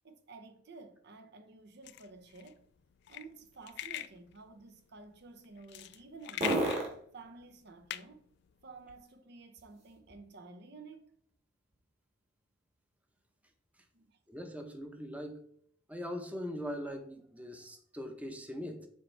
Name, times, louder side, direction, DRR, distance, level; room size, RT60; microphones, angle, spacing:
voice 1, 0.0-2.6 3.1-6.7 7.1-8.2 8.6-11.1 13.9-14.2, right 3 dB, 60° right, 0.8 m, -52 dB
sound 1, 1.4-10.5 10.9-14.7, right 1 dB, 35° right, 1.7 m, -43 dB
sound 2, 1.8-9.0, left 13 dB, 65° left, 0.3 m, -44 dB
voice 2, 14.3-15.4 15.9-18.9, equal, 10° right, 0.8 m, -41 dB
7.2 x 4.4 x 3.3 m
head